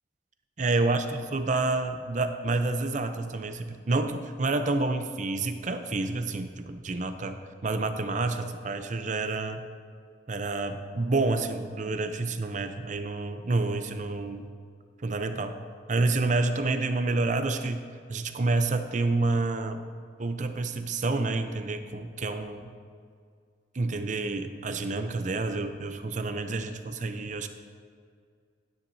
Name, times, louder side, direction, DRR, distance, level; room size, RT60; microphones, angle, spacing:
voice 1, 0.6-9.7 10.3-14.4 15.0-15.6 15.9-19.8 20.2-22.7 23.7-27.5, right 3 dB, 45° right, 8 dB, 0.6 m, -29 dB
12.0 x 9.9 x 2.7 m, 2.2 s
head